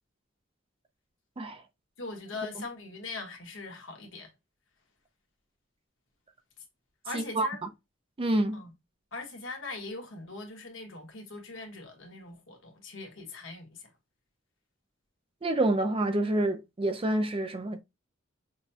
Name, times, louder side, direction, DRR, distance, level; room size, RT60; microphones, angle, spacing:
voice 1, 2.0-4.3 7.0-7.6 8.5-8.7 9.1-13.9, left 3 dB, 70° left, 1.4 m, -41 dB
voice 2, 7.1-7.5 8.2-8.6 15.4-17.8, right 1 dB, 30° right, 0.5 m, -27 dB
6.1 x 2.2 x 2.7 m
head